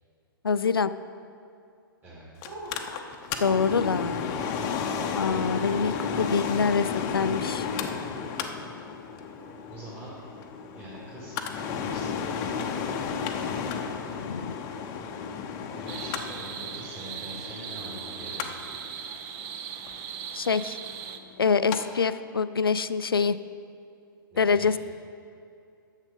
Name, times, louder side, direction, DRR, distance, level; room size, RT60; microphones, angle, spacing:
voice 1, 0.4-0.9 3.4-4.3 5.2-7.7 14.2-14.6 20.3-20.8 21.4-23.4 24.4-24.8, left 5 dB, 80° left, 13 dB, 0.4 m, -25 dB
Mechanical fan, 2.4-21.8 22.1-22.2, left 6 dB, 30° left, 0.7 m, -33 dB
sound 1, 2.4-2.7 3.4-3.6 4.3-4.6 5.1-5.6 6.1-6.4 8.4-8.5 9.4-9.7 10.9-11.1 11.9-12.0, right 2 dB, 60° right, 2.0 m, -41 dB
voice 2, 9.7-10.2 10.7-12.8 15.8-18.6 24.3-24.7, right 1 dB, 15° right, -10 dB, 2.4 m, -44 dB
sound 2, 15.9-21.2, right 8 dB, 35° right, 0.6 m, -39 dB
10.5 x 7.3 x 5.4 m, 2.5 s
figure-of-eight pair, 115°, 12 cm